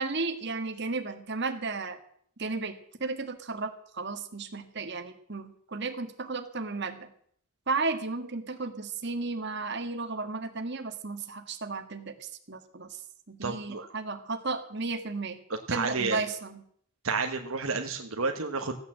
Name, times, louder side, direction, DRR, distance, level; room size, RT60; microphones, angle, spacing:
voice 1, 0.0-2.0 2.4-7.1 7.7-12.9 13.3-15.4 15.7-16.6, right 3 dB, 50° right, 6 dB, 1.6 m, -34 dB
voice 2, 13.4-13.9 15.7-16.2 17.0-18.8, right 4 dB, 70° right, 4 dB, 1.3 m, -30 dB
15.0 x 9.1 x 7.4 m, 0.64 s
head